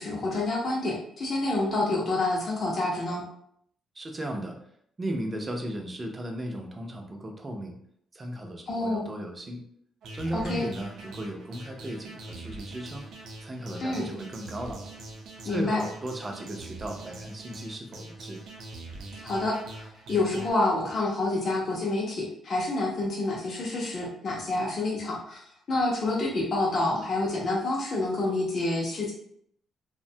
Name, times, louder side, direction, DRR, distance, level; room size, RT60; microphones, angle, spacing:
voice 1, 0.0-3.2 8.7-9.1 10.3-10.7 13.8-14.1 15.5-15.8 19.2-25.4 25.7-29.1, left 2 dB, 40° left, -3 dB, 0.5 m, -28 dB
voice 2, 4.0-4.6 5.0-7.8 8.1-9.6 10.1-13.1 13.4-14.8 15.4-18.4, right 1 dB, 20° right, 3 dB, 0.4 m, -36 dB
sound 1, 10.0-20.5, right 2 dB, 70° right, 0.5 m, -43 dB
2.6 x 2.1 x 2.6 m, 0.68 s
cardioid pair, 150°, 0 cm